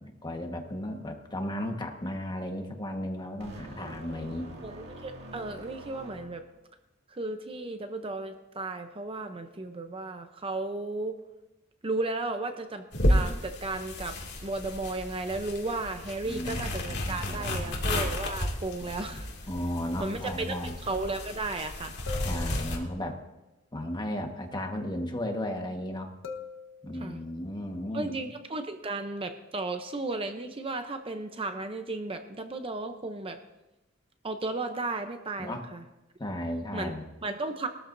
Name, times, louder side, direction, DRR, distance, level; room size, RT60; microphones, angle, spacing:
voice 1, 0.0-4.5 16.2-17.8 18.8-19.2 19.5-20.7 22.2-23.2 23.7-26.1 26.8-28.3 35.4-35.6 36.2-37.0, left 1 dB, 20° left, 3 dB, 1.4 m, -35 dB
sound 1, 3.4-6.6, right 1 dB, 60° right, 2.3 m, -46 dB
voice 2, 4.6-6.4 7.1-11.2 11.8-19.3 20.0-21.9 26.9-27.2 27.9-33.4 34.2-35.8 36.7-36.9 37.2-37.7, right 2 dB, 25° right, 7 dB, 0.7 m, -34 dB
sound 2, 12.9-22.8, left 1 dB, 60° left, 2.4 m, -32 dB
sound 3, 22.1-23.2 26.2-27.3, left 5 dB, 75° left, 1.2 m, -43 dB
21.0 x 13.5 x 2.7 m, 0.97 s
head